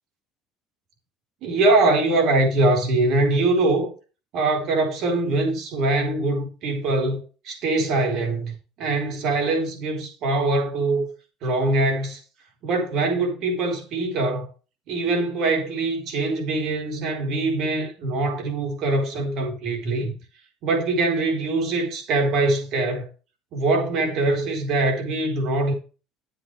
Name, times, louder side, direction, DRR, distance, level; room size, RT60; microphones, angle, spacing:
voice 1, 1.4-3.9 4.3-11.1 11.4-12.2 12.6-14.5 14.9-20.1 20.6-23.1 23.5-25.7, right 2 dB, 60° right, 4.3 m, -23 dB
10.5 x 8.0 x 3.4 m
supercardioid pair, 100°, 0 cm